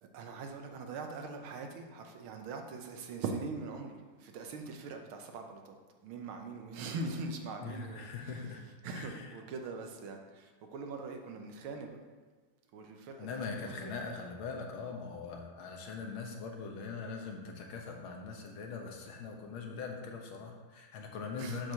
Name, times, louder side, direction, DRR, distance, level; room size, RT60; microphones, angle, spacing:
voice 1, 0.0-5.8 6.0-12.0 12.7-13.9 21.4-21.7, right 4 dB, 85° right, 4 dB, 1.7 m, -42 dB
voice 2, 7.6-8.6 9.0-9.3 13.2-21.7, left 4 dB, 80° left, 1 dB, 1.9 m, -41 dB
7.2 x 4.6 x 6.4 m, 1.4 s
omnidirectional pair, 2.2 m